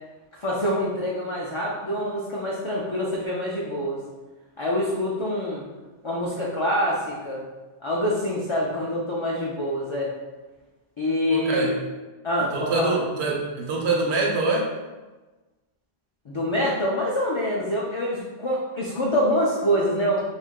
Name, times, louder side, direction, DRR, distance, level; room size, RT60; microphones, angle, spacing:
voice 1, 0.4-4.0 4.6-5.6 6.0-7.4 7.8-10.1 11.0-11.7 12.2-12.9 16.3-20.2, equal, 50° left, -5 dB, 0.3 m, -25 dB
voice 2, 11.3-11.8 12.5-14.7, right 3 dB, 90° right, 0 dB, 0.9 m, -24 dB
2.6 x 2.4 x 3.6 m, 1.2 s
omnidirectional pair, 1.1 m